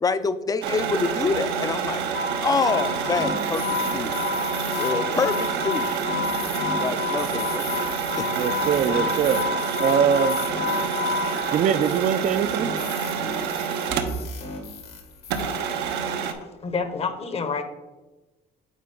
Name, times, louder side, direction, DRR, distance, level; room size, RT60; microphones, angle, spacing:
voice 1, 0.0-2.0 2.4-4.1 4.8-6.0 6.8-7.7 8.2-8.3 11.3-11.5, left 4 dB, 20° left, 12 dB, 0.4 m, -26 dB
sound 1, 0.6-14.4 14.7-14.8 15.3-16.3, right 7 dB, 85° right, 0.8 m, -28 dB
sound 2, 2.1-11.8 16.4-16.5, left 6 dB, 90° left, 0.8 m, -30 dB
sound 3, 3.1-16.2, left 4 dB, 70° left, 1.6 m, -38 dB
voice 2, 8.3-9.5 9.8-10.4 11.5-12.7, right 8 dB, 50° right, 13 dB, 0.4 m, -22 dB
voice 3, 16.6-17.6, left 5 dB, 35° left, 9 dB, 0.8 m, -28 dB
8.4 x 4.3 x 3.7 m, 1.1 s
cardioid pair, 110°, 17 cm